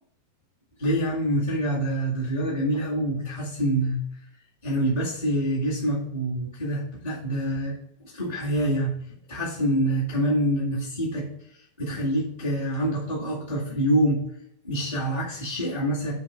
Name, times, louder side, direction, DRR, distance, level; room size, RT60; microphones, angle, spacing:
voice 1, 0.8-4.0 4.6-7.7 8.1-8.9 9.3-11.3 11.8-14.2 14.6-16.1, right 1 dB, 15° left, -9 dB, 1.8 m, -26 dB
8.6 x 4.5 x 5.2 m, 0.76 s
omnidirectional pair, 3.7 m